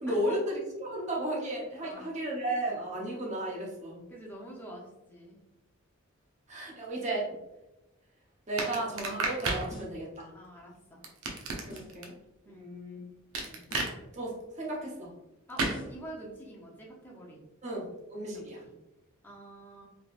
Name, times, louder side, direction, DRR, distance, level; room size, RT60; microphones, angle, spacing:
voice 1, 0.0-4.0 6.5-7.3 8.5-10.3 11.6-12.1 12.5-13.0 13.5-13.6 14.1-15.1 17.6-18.6, right 1 dB, 35° right, -3 dB, 0.8 m, -34 dB
voice 2, 1.8-2.1 4.1-5.4 10.3-11.0 12.5-12.6 15.5-17.4 18.3-18.7 19.2-19.9, equal, 10° left, -3 dB, 0.7 m, -46 dB
sound 1, 8.6-9.7 11.0-12.1 13.3-13.9 15.6-15.8, right 3 dB, 85° right, 0.6 m, -31 dB
sound 2, 9.7-10.1 11.7-12.1 13.7-14.1 15.7-16.1, left 1 dB, 75° left, 1.2 m, -50 dB
3.4 x 2.9 x 2.4 m, 0.96 s
head